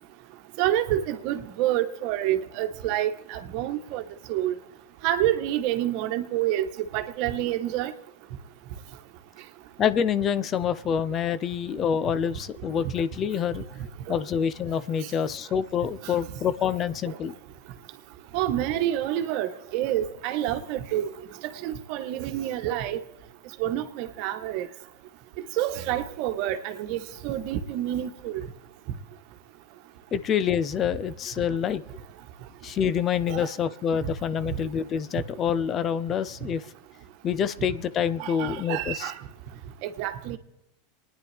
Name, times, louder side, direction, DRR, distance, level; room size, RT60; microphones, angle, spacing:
voice 1, 0.6-4.0 4.3-4.5 5.0-6.7 6.9-7.9 16.0-16.1 17.0-17.1 18.3-21.1 21.4-23.0 23.6-24.7 25.6-28.4 33.3-33.5 38.2-39.1 39.8-40.4, right 12 dB, 60° right, 8 dB, 1.2 m, -28 dB
voice 2, 9.8-13.6 14.1-17.4 30.1-31.8 32.6-36.6 37.2-39.1, left 8 dB, 35° left, 16 dB, 0.6 m, -27 dB
27.0 x 10.0 x 3.4 m, 0.93 s
hypercardioid pair, 105°, 0 cm